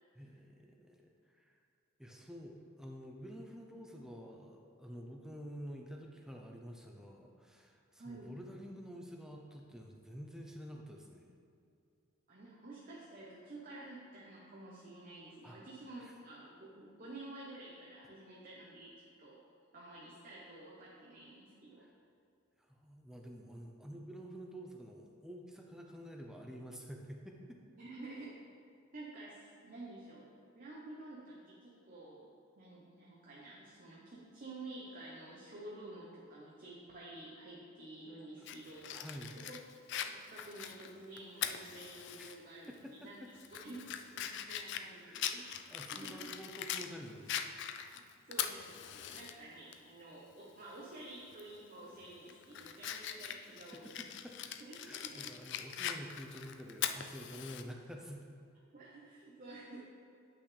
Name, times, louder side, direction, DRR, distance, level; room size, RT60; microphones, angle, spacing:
voice 1, 0.1-1.5 2.0-11.3 15.4-15.6 16.0-16.1 21.8-21.9 22.7-27.9 38.4-38.5 38.9-39.4 42.2-42.4 42.7-43.3 45.0-45.3 45.7-47.5 53.5-58.2, equal, 5° right, 1 dB, 0.6 m, -49 dB
voice 2, 8.0-8.3 12.3-19.4 19.7-21.9 27.8-28.3 28.9-30.3 30.5-32.3 32.5-39.6 39.9-43.2 43.6-45.5 45.9-46.3 47.8-48.0 48.3-53.9 54.6-55.2 58.7-59.8, right 2 dB, 40° right, -5 dB, 0.9 m, -50 dB
Fire, 38.5-42.3 42.7-42.8 43.3-46.9 47.3-49.3 49.7-49.8 51.3-51.6 52.0-57.6, left 9 dB, 60° left, 0.3 m, -41 dB
8.9 x 5.7 x 3.3 m, 2.5 s
head